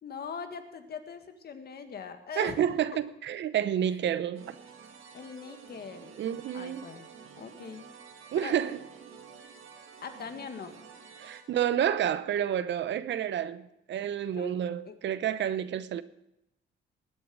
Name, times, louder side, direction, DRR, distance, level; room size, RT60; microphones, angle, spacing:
voice 1, 0.0-2.7 5.1-6.1 6.5-7.1 7.4-7.9 8.3-8.6 10.0-10.7 14.4-14.5 14.9-15.0, left 6 dB, 55° left, 1.8 m, -41 dB
voice 2, 2.4-4.6 6.2-6.9 8.3-8.8 11.2-16.0, right 10 dB, 65° right, 0.8 m, -29 dB
sound 1, 4.3-11.4, right 6 dB, 85° right, 1.9 m, -50 dB
19.0 x 8.5 x 6.2 m
cardioid pair, 90°, 20 cm